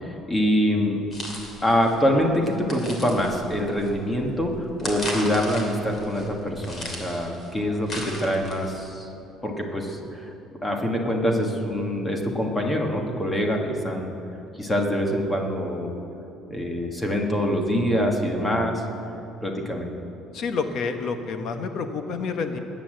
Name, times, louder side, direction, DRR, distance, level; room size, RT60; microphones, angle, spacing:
voice 1, 0.0-1.0 1.6-9.1 9.4-10.3 10.6-14.1 14.6-15.9 16.5-18.8 19.4-19.9, equal, 10° left, 2 dB, 1.6 m, -25 dB
sound 1, 1.1-8.8, left 1 dB, 25° left, 2.5 m, -37 dB
voice 2, 20.3-22.6, left 5 dB, 45° left, 7 dB, 1.1 m, -28 dB
20.0 x 8.6 x 7.7 m, 2.9 s
cardioid pair, 165°, 0 cm